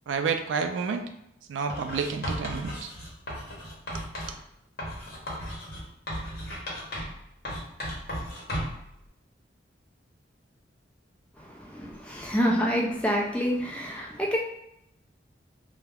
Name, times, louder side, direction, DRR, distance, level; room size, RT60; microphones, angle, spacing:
voice 1, 0.1-1.0 1.5-2.9 3.3-3.4 3.9-4.0, right 5 dB, 80° right, 7 dB, 0.3 m, -30 dB
Writing, 1.7-4.4 4.8-7.2 7.5-8.9, equal, 55° left, 0.8 m, -35 dB
voice 2, 11.4-14.4, equal, 5° left, -2 dB, 0.3 m, -27 dB
2.3 x 2.1 x 3.3 m, 0.77 s
head